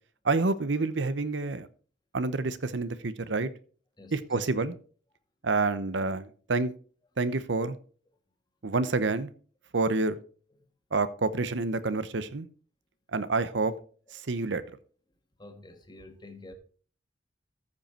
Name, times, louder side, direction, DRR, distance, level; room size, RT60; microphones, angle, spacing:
voice 1, 0.2-1.7 2.1-3.5 4.1-4.7 5.4-6.7 7.2-7.8 8.6-9.3 9.7-10.2 10.9-12.5 13.1-13.7 14.1-14.6, right 3 dB, 75° right, 0.8 m, -28 dB
voice 2, 15.4-16.5, left 2 dB, 25° left, 1.5 m, -48 dB
14.0 x 5.5 x 4.3 m
head